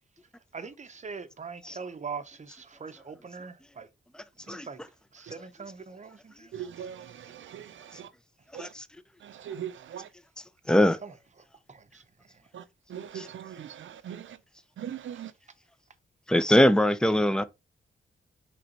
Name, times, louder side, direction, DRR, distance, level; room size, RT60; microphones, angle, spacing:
voice 1, 0.5-3.9 4.5-4.8 5.1-6.5 11.0-11.1 11.7-12.0, right 5 dB, 35° right, 0.7 m, -42 dB
voice 2, 6.5-8.1 8.5-8.7 9.2-10.1 12.5-12.6 12.9-14.3 14.8-15.3, right 9 dB, 70° right, 0.5 m, -40 dB
voice 3, 10.7-11.0 13.1-13.3 16.3-17.4, left 1 dB, 5° left, 0.5 m, -22 dB
5.0 x 3.4 x 2.8 m
cardioid pair, 70°, 21 cm